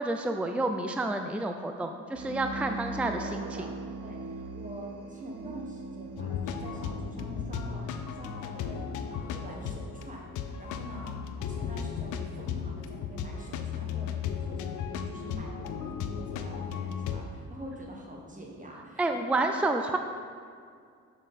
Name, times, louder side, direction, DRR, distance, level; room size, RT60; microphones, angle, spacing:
voice 1, 0.0-3.4 19.0-20.0, right 2 dB, 5° right, 5 dB, 0.4 m, -29 dB
sound 1, 2.1-9.5, right 2 dB, 50° right, 1.0 m, -41 dB
voice 2, 3.0-3.7 4.0-19.9, right 1 dB, 25° right, -1 dB, 1.4 m, -45 dB
sound 2, 6.2-17.2, left 7 dB, 85° left, 0.6 m, -35 dB
7.4 x 6.9 x 4.2 m, 2.2 s
cardioid pair, 90°, 30 cm